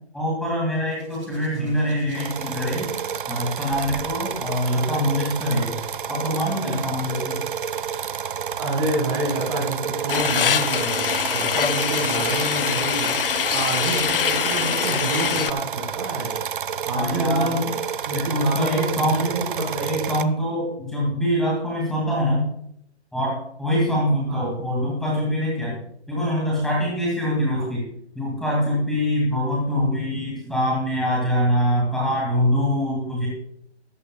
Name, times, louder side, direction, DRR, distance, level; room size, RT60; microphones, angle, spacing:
voice 1, 0.1-2.9 3.3-5.7 6.1-7.4 16.9-17.5 18.1-19.3 19.8-22.5 23.1-25.8 26.1-27.9 28.1-33.3, equal, ahead, -4 dB, 2.3 m, -24 dB
Hands, 0.9-4.8 5.8-6.1, right 2 dB, 75° right, 4.9 m, -44 dB
sound 1, 2.1-20.2, right 7 dB, 50° right, 0.4 m, -30 dB
voice 2, 8.6-13.1 13.5-16.4 16.9-17.8 18.1-19.9 24.3-24.6 27.6-27.7, right 1 dB, 25° right, 0 dB, 1.9 m, -28 dB
sound 2, 10.1-15.5, left 8 dB, 55° left, 0.5 m, -24 dB
15.0 x 12.5 x 2.3 m, 0.72 s
hypercardioid pair, 165°, 34 cm